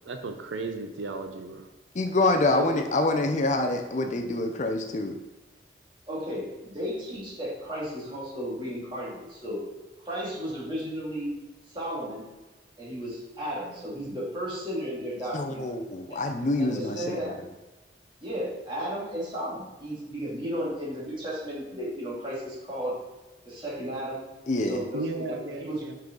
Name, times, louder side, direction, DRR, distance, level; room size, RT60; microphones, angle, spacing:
voice 1, 0.1-1.7 24.9-25.9, right 3 dB, 85° right, 6 dB, 0.6 m, -35 dB
voice 2, 1.9-5.1 15.3-17.4 24.5-24.8, left 2 dB, 40° left, 5 dB, 0.5 m, -26 dB
voice 3, 6.1-9.6 10.0-11.3 11.7-12.3 12.8-15.6 16.1-16.2 16.6-17.3 18.2-22.9 23.4-24.3 24.7-25.8, equal, 25° right, -7 dB, 2.3 m, -34 dB
5.6 x 5.4 x 3.8 m, 1.1 s
head